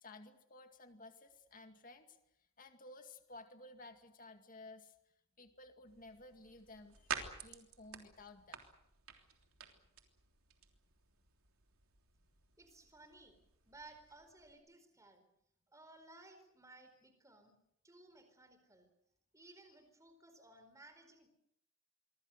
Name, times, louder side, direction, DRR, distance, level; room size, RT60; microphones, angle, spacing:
voice 1, 0.0-2.2 2.6-4.9 5.4-8.6 19.7-19.8, left 2 dB, 40° left, 6 dB, 2.2 m, -55 dB
sound 1, 5.9-14.5, right 6 dB, 80° right, 3.3 m, -50 dB
voice 2, 12.6-13.4 13.7-15.2 15.7-17.6 17.8-18.9 19.3-21.3, right 2 dB, 15° right, 8 dB, 4.6 m, -59 dB
26.0 x 24.0 x 6.6 m, 0.77 s
head